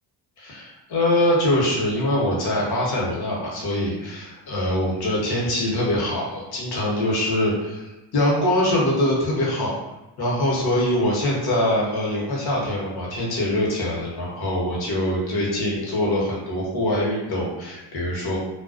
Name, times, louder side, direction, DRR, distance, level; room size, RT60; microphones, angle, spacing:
voice 1, 0.4-9.8 10.2-18.4, left 1 dB, 50° left, -4 dB, 1.0 m, -23 dB
2.3 x 2.2 x 2.4 m, 1.0 s
supercardioid pair, 75°, 49 cm